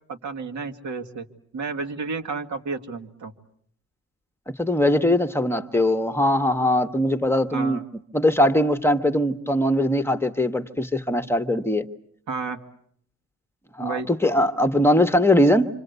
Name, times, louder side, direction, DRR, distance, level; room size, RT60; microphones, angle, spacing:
voice 1, 0.1-1.3 1.5-3.3 7.5-7.8 12.3-12.6 13.8-14.1, right 4 dB, 70° right, 4 dB, 2.2 m, -31 dB
voice 2, 4.5-7.8 8.1-11.9 13.8-15.7, left 1 dB, 10° left, 7 dB, 1.2 m, -21 dB
27.0 x 25.0 x 8.2 m, 0.66 s
cardioid pair, 90°, 30 cm